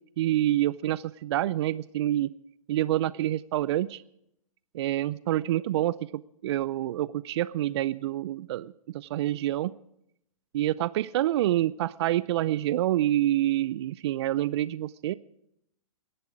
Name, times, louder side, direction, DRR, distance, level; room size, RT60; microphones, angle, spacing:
voice 1, 0.2-2.3 2.7-4.0 4.7-9.7 10.5-15.1, right 13 dB, 45° right, 19 dB, 0.5 m, -27 dB
24.0 x 11.0 x 4.9 m, 0.76 s
hypercardioid pair, 130°, 19 cm